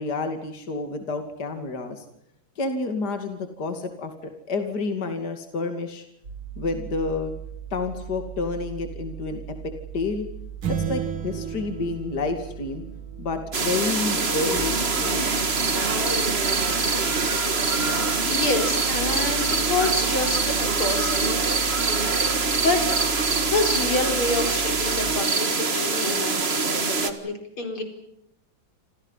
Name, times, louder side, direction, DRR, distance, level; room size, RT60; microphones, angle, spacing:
voice 1, 0.0-2.0 2.6-6.0 6.6-7.3 7.7-10.3 10.7-12.8 13.2-15.4, left 3 dB, 50° left, 6 dB, 3.1 m, -29 dB
sound 1, 6.2-25.0, right 9 dB, 55° right, 3.0 m, -38 dB
sound 2, 10.6-13.3, right 8 dB, 80° right, 3.0 m, -32 dB
sound 3, 13.5-27.1, right 4 dB, 30° right, 1.9 m, -24 dB
voice 2, 18.3-21.3 22.5-22.8 23.4-27.8, left 3 dB, 90° left, 5 dB, 5.5 m, -28 dB
28.5 x 28.0 x 5.7 m, 0.75 s
omnidirectional pair, 2.3 m